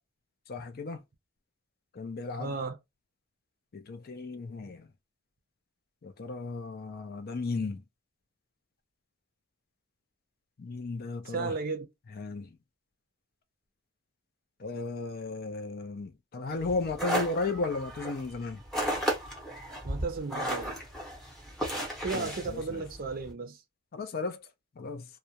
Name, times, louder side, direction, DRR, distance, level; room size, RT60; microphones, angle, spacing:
voice 1, 0.5-1.0 1.9-2.5 3.7-4.9 6.0-7.8 10.6-11.5 12.1-12.6 14.6-18.6 22.1-22.8 23.9-24.4 24.8-25.1, left 3 dB, 45° left, 0.4 m, -35 dB
voice 2, 2.4-2.8 11.3-11.9 19.8-20.8 22.0-23.6, right 4 dB, 45° right, 0.5 m, -34 dB
sound 1, 16.6-23.3, right 1 dB, 5° left, 0.8 m, -34 dB
2.3 x 2.1 x 2.7 m
head